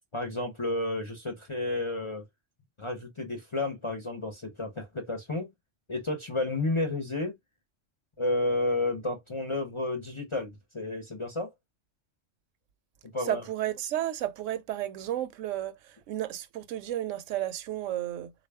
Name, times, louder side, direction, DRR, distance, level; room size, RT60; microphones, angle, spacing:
voice 1, 0.1-2.2 2.8-5.5 5.9-7.3 8.2-11.5 13.1-13.4, left 2 dB, 35° left, 0.5 m, -31 dB
voice 2, 13.2-18.3, right 12 dB, 85° right, 0.9 m, -33 dB
3.7 x 2.3 x 3.3 m
omnidirectional pair, 1.3 m